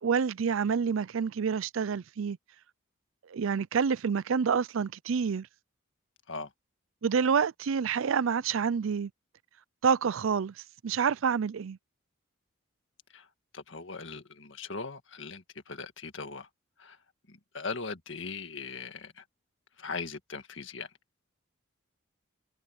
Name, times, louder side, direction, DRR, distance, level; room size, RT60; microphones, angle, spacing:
voice 1, 0.0-2.4 3.3-5.5 7.0-9.1 9.8-10.5 10.8-11.8, right 6 dB, 70° right, 0.4 m, -28 dB
voice 2, 13.5-16.5 16.8-17.0 17.3-19.2 19.8-20.9, left 4 dB, 65° left, 1.8 m, -39 dB
head